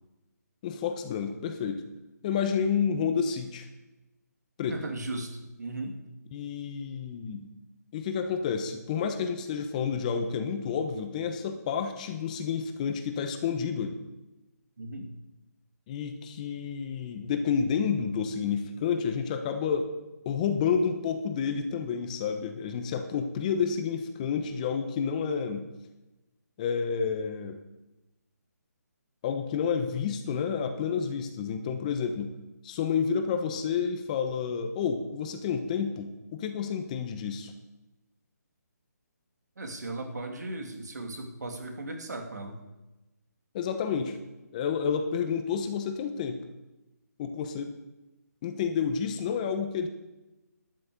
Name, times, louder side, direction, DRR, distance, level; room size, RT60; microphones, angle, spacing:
voice 1, 0.6-1.8 2.2-3.7 4.6-4.8 6.3-7.5 7.9-14.0 15.9-19.9 20.2-25.7 26.6-27.6 29.2-32.3 32.6-37.5 43.5-44.2 44.5-46.4 47.2-47.7 48.4-49.9, left 6 dB, 25° left, 7 dB, 1.0 m, -30 dB
voice 2, 4.7-6.0 14.8-15.1 39.6-42.6, right 2 dB, 70° right, 4 dB, 2.6 m, -37 dB
12.5 x 6.4 x 7.9 m, 1.0 s
hypercardioid pair, 160°, 9 cm